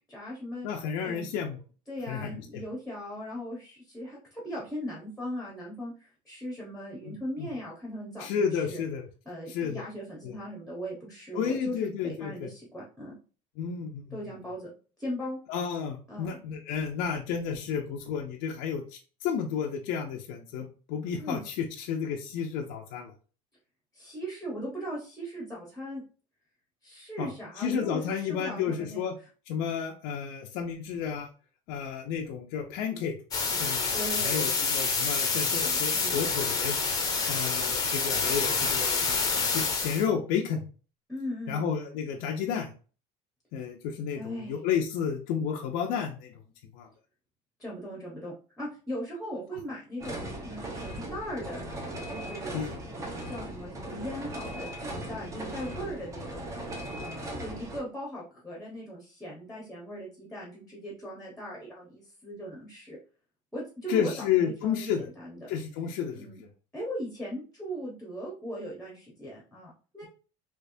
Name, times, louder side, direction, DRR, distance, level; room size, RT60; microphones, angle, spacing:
voice 1, 0.1-0.7 1.0-1.3 1.9-8.8 9.2-13.2 14.1-14.7 15.0-15.4 16.1-16.4 21.2-21.4 23.9-26.0 26.8-29.0 33.9-34.5 35.5-36.2 41.1-41.6 44.2-44.6 47.6-51.6 52.1-52.5 53.1-56.6 57.0-63.0 63.5-65.5 66.1-66.4 66.7-70.1, equal, 5° left, -3 dB, 1.0 m, -39 dB
voice 2, 0.6-1.6 2.1-2.6 7.0-7.5 8.2-9.1 9.5-9.8 10.2-10.4 11.3-12.5 13.6-14.2 15.5-23.1 27.2-27.3 27.6-29.1 29.5-31.3 31.7-33.1 33.6-36.8 37.3-40.6 41.5-42.7 43.5-46.3 46.7-46.9 52.5-52.7 63.9-65.1 65.5-66.3, left 7 dB, 65° left, 1 dB, 0.6 m, -31 dB
sound 1, 33.3-40.1, left 4 dB, 25° left, 0.8 m, -27 dB
sound 2, 50.0-57.8, right 1 dB, 20° right, 0.8 m, -38 dB
3.4 x 3.1 x 2.6 m, 0.37 s
cardioid pair, 145°, 16 cm